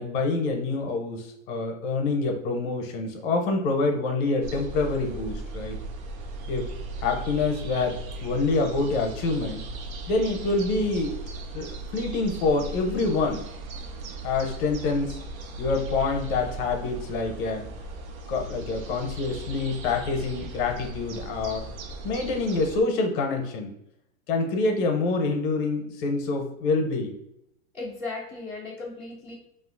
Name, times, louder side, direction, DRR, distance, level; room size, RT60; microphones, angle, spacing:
voice 1, 0.0-5.8 6.5-6.7 7.0-9.6 10.1-11.1 11.5-13.4 14.2-15.2 15.6-17.6 18.3-21.6 22.0-23.7 24.3-27.2, left 3 dB, 40° left, 3 dB, 0.6 m, -26 dB
sound 1, 4.4-22.8, right 2 dB, 85° right, 0.6 m, -37 dB
voice 2, 27.7-29.3, left 3 dB, 5° right, -12 dB, 0.3 m, -36 dB
2.9 x 2.4 x 2.4 m, 0.80 s
hypercardioid pair, 125°, 41 cm